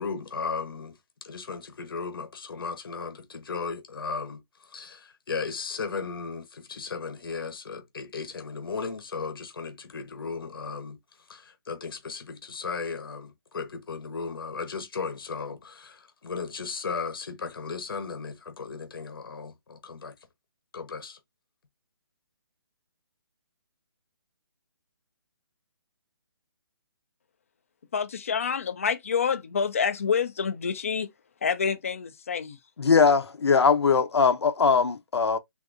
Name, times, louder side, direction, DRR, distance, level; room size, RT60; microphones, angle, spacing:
voice 1, 0.0-11.0 11.3-20.1 20.7-21.2, left 5 dB, 60° left, 0.9 m, -36 dB
voice 2, 27.9-31.1 31.4-32.6, left 6 dB, 35° left, 0.4 m, -27 dB
voice 3, 32.8-35.4, left 5 dB, 90° left, 0.7 m, -21 dB
3.6 x 2.6 x 2.5 m
hypercardioid pair, 175°, 13 cm